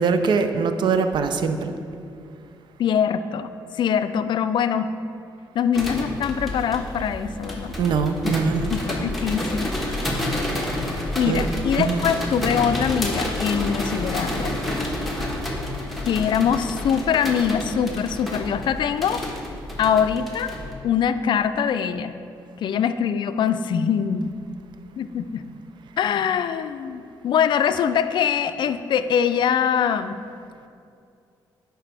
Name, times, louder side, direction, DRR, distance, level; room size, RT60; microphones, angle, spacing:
voice 1, 0.0-1.7 7.8-8.7 11.3-11.4 11.8-12.1, right 5 dB, 65° right, 8 dB, 0.5 m, -22 dB
voice 2, 2.8-3.5 3.7-4.9 5.5-7.7 8.2-8.4 8.7-9.7 11.1-14.5 16.0-19.2 19.8-20.5 20.8-22.1 22.6-24.3 25.0-25.4 26.0-30.2, left 8 dB, 65° left, 11 dB, 0.4 m, -23 dB
sound 1, 5.7-20.7, left 1 dB, ahead, 1.4 m, -29 dB
11.0 x 4.5 x 3.4 m, 2.5 s
cardioid pair, 90°, 9 cm